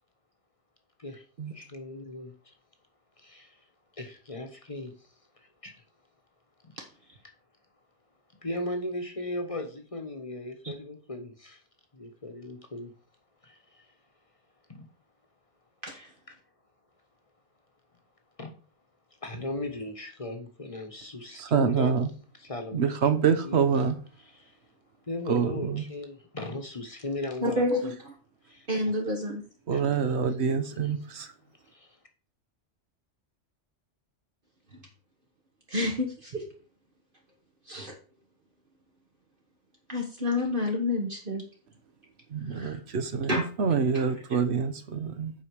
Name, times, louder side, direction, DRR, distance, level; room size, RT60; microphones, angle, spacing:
voice 1, 1.5-2.5 3.2-3.6 3.9-5.8 6.6-6.8 8.4-11.6 11.9-12.9 13.4-13.9 14.7-14.9 16.3-16.4 18.4-18.5 19.2-22.0 22.4-23.1 23.4-23.6 24.2-24.6 25.0-27.9 28.4-28.7 29.7-32.0, left 2 dB, 30° left, 1.2 m, -38 dB
voice 2, 21.4-22.1 22.7-24.0 25.3-25.8 29.7-31.3 42.3-45.3, right 6 dB, 65° right, 1.1 m, -26 dB
voice 3, 27.4-28.1 28.7-29.4 35.7-36.4 37.7-37.9 39.9-41.4 42.5-42.8 43.3-43.4 43.9-44.0, left 1 dB, 45° right, 1.5 m, -29 dB
8.3 x 5.1 x 4.8 m
omnidirectional pair, 1.2 m